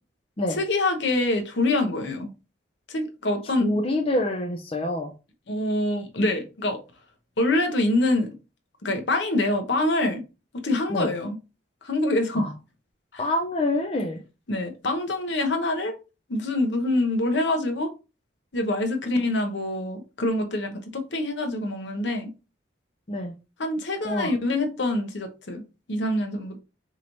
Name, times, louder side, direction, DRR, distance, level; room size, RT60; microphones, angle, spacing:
voice 1, 0.6-2.3 2.9-3.7 5.5-6.8 7.4-8.3 8.8-10.2 10.6-11.4 11.8-12.5 13.1-13.2 14.5-16.0 16.3-17.9 18.5-22.3 23.6-25.6 25.9-26.6, left 2 dB, 65° left, 0.9 m, -25 dB
voice 2, 3.4-5.1 10.9-11.1 12.4-12.5 13.2-14.2 23.1-23.3 24.0-24.3, left 1 dB, 30° left, 0.5 m, -26 dB
4.9 x 3.0 x 2.6 m
head